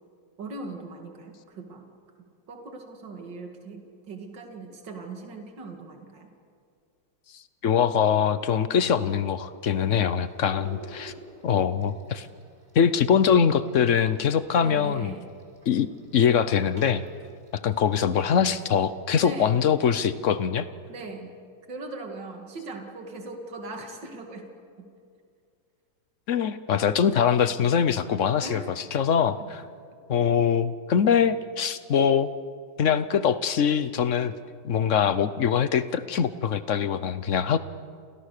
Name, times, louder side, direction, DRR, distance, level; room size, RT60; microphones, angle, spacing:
voice 1, 0.4-1.9 2.5-6.3 14.6-15.3 19.2-19.6 20.9-21.4 21.7-24.9 28.4-28.7 29.4-29.5, right 3 dB, 70° right, 3 dB, 3.1 m, -39 dB
voice 2, 7.6-11.1 11.4-12.3 12.7-15.1 15.7-17.0 17.5-20.7 26.3-28.6 28.9-29.6 30.1-32.3 32.8-34.3 34.6-37.6, left 7 dB, 50° left, 14 dB, 1.0 m, -23 dB
sound 1, 9.7-18.1, right 1 dB, 20° right, 6.1 m, -49 dB
29.5 x 28.0 x 6.7 m, 2.3 s
omnidirectional pair, 2.1 m